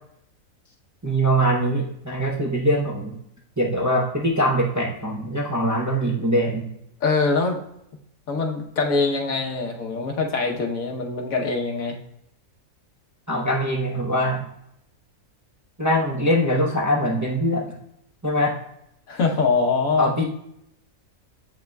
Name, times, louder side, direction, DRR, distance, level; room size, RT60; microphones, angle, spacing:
voice 1, 1.0-3.1 3.6-6.7 13.3-14.4 15.8-17.7 18.2-18.5 20.0-20.2, equal, 15° right, -1 dB, 0.6 m, -22 dB
voice 2, 7.0-7.6 8.3-12.0 19.1-20.1, left 4 dB, 75° left, 2 dB, 1.4 m, -23 dB
7.6 x 5.7 x 2.3 m, 0.77 s
omnidirectional pair, 1.5 m